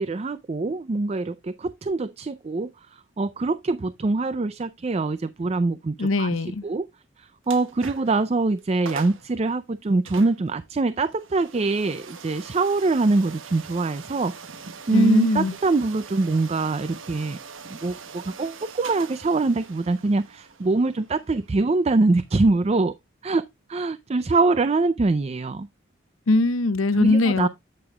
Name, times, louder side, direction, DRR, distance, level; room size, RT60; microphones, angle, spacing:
voice 1, 0.0-6.3 6.6-6.9 7.2-14.3 14.9-17.4 17.7-22.9 23.2-23.4 23.7-25.7 27.0-27.5, right 3 dB, 30° right, 0.4 m, -24 dB
voice 2, 6.0-6.6 14.9-15.5 26.3-27.5, left 2 dB, 85° left, 0.8 m, -21 dB
sound 1, 7.4-8.2 8.6-8.7 8.8-9.3 10.0-22.8, right 5 dB, 80° right, 1.1 m, -43 dB
8.8 x 8.5 x 2.3 m
head